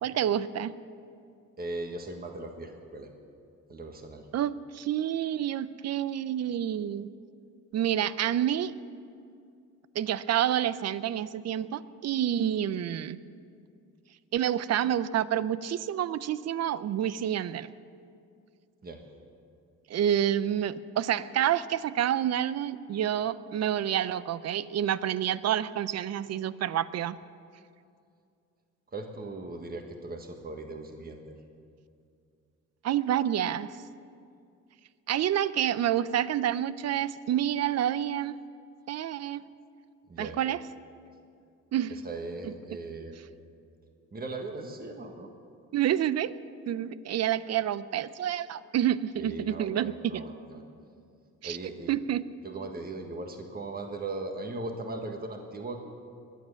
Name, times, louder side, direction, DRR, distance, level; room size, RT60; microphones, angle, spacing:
voice 1, 0.0-0.7 4.3-7.1 7.7-8.7 9.9-13.2 14.3-17.7 19.9-27.2 32.8-33.8 35.1-38.4 38.9-39.4 40.2-40.6 41.7-42.0 42.4-42.5 45.7-46.3 46.7-50.2 51.4-51.6 51.9-52.3, right 10 dB, 60° right, 16 dB, 0.6 m, -28 dB
voice 2, 1.6-3.1 3.7-4.2 18.8-19.0 28.9-31.4 40.1-40.4 41.9-43.2 44.1-45.3 49.2-50.6 51.4-52.0 52.4-55.8, right 2 dB, 30° right, 4 dB, 1.6 m, -38 dB
22.0 x 9.3 x 7.0 m, 2.4 s
cardioid pair, 90°, 30 cm